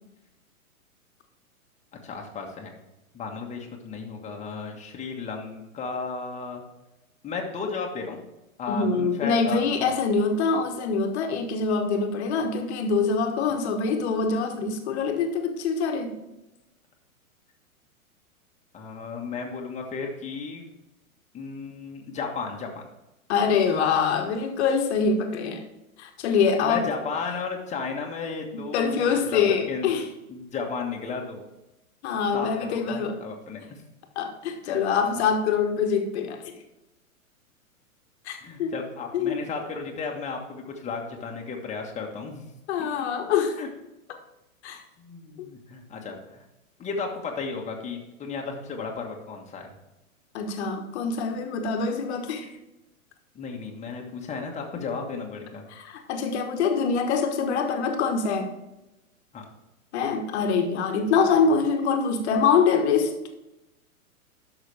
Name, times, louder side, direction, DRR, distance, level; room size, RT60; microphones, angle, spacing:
voice 1, 2.0-2.7 3.1-6.6 7.2-8.2 8.6-10.0 18.7-20.6 21.3-22.9 26.6-29.9 30.3-31.5 32.3-33.8 34.6-34.8 38.4-42.5 43.0-43.1 43.6-43.7 45.0-46.4 46.8-49.7 53.3-55.6 59.3-59.4, left 4 dB, 15° left, 1 dB, 1.5 m, -34 dB
voice 2, 8.7-16.2 23.3-25.6 26.0-26.8 28.5-30.1 32.0-33.2 34.1-36.5 38.3-38.7 39.1-39.4 42.7-43.6 44.6-44.8 45.4-45.5 50.3-52.5 55.7-58.5 59.9-63.1, left 5 dB, 50° left, 5 dB, 1.4 m, -24 dB
11.5 x 6.1 x 3.4 m, 0.96 s
hypercardioid pair, 115°, 43 cm